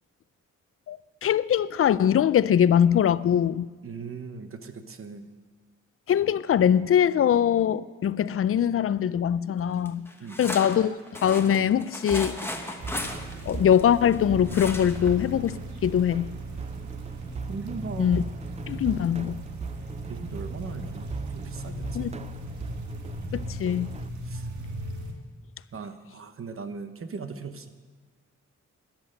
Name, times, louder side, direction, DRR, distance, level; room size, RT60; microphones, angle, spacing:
voice 1, 0.9-3.7 6.1-10.1 10.4-12.4 13.5-15.5 15.8-16.3 18.0-18.2 18.7-19.4 21.9-22.3 23.3-23.9, left 9 dB, 50° left, 0.4 m, -22 dB
voice 2, 3.8-5.3 10.0-10.5 16.8-16.9 17.5-18.2 20.1-22.1 24.2-24.5 25.7-27.7, right 5 dB, 45° right, 1.0 m, -39 dB
sound 1, 9.9-14.2 14.5-15.1 15.5-15.6 15.8-15.9, left 1 dB, 10° left, 1.2 m, -36 dB
sound 2, 12.1-24.1, right 5 dB, 25° right, 0.4 m, -40 dB
sound 3, 12.8-25.1, right 1 dB, 70° right, 1.9 m, -37 dB
13.0 x 10.0 x 6.5 m
wide cardioid pair, 110°, 30 cm